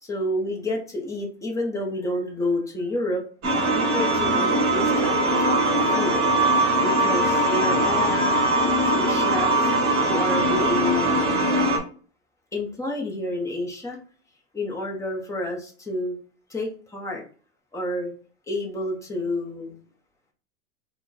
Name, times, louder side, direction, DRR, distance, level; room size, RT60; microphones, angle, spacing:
voice 1, 0.0-3.2 3.7-6.2 6.7-8.4 8.9-9.7 10.1-11.7 12.5-14.0 14.5-16.2 16.5-17.2 17.7-18.1 18.5-19.8, left 1 dB, 10° left, 0 dB, 0.8 m, -29 dB
sound 1, 3.4-11.8, right 1 dB, 35° right, 1.5 m, -21 dB
4.2 x 2.3 x 4.1 m, 0.41 s
supercardioid pair, 140°, 37 cm